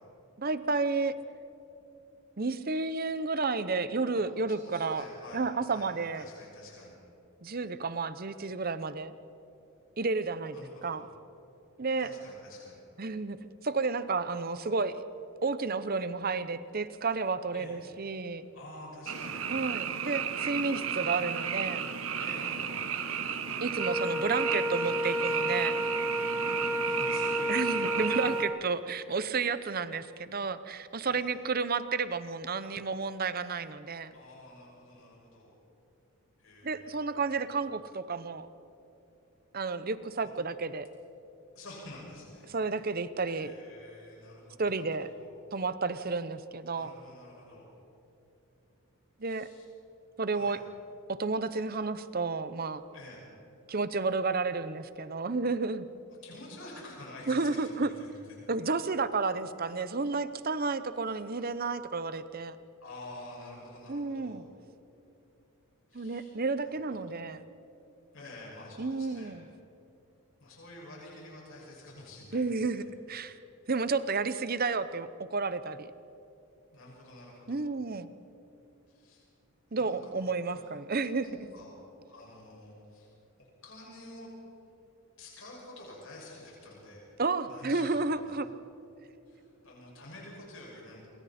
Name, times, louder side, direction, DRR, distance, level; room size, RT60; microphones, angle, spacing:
voice 1, 0.4-1.1 2.4-5.0 5.3-6.2 7.4-9.1 10.0-10.6 10.8-11.0 11.8-12.1 13.0-15.0 15.4-18.5 19.5-21.8 23.6-25.8 27.5-34.1 36.6-38.5 39.5-40.9 42.5-43.5 44.6-45.1 45.5-46.9 49.2-49.5 50.2-50.6 51.1-52.8 53.7-55.9 57.3-57.9 58.5-62.6 63.9-64.4 65.9-67.4 68.8-69.4 72.3-73.4 73.7-75.9 77.5-78.1 79.7-81.3 87.2-88.5, right 4 dB, 40° right, 13 dB, 0.8 m, -31 dB
voice 2, 4.5-7.0 10.5-11.0 12.0-12.8 17.5-17.8 18.2-19.5 22.2-22.8 26.8-27.9 31.0-31.3 34.1-35.6 36.4-37.6 40.2-40.3 41.5-42.6 43.2-44.9 45.2-45.3 46.7-47.7 49.2-49.6 50.3-50.6 52.9-53.3 56.2-58.5 62.8-64.4 65.9-66.3 66.6-67.2 68.1-69.4 70.4-72.8 76.7-77.7 78.9-79.3 79.7-80.7 81.2-81.7 82.1-84.3 85.2-87.2 87.5-88.2 89.3-91.1, left 1 dB, 65° left, -4 dB, 6.3 m, -49 dB
Frog, 19.1-28.4, right 7 dB, 70° right, 1.1 m, -33 dB
Wind instrument woodwind instrument, 23.8-28.7, equal, 5° right, 0.5 m, -31 dB
27.5 x 23.0 x 4.3 m, 2.8 s
head